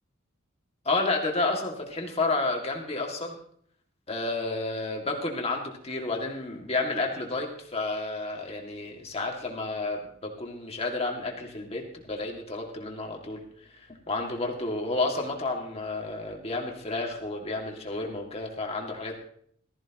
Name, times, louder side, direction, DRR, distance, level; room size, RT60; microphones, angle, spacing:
voice 1, 0.8-3.3 4.1-19.2, left 2 dB, 30° left, 1 dB, 2.3 m, -31 dB
19.0 x 14.0 x 3.0 m, 0.63 s
head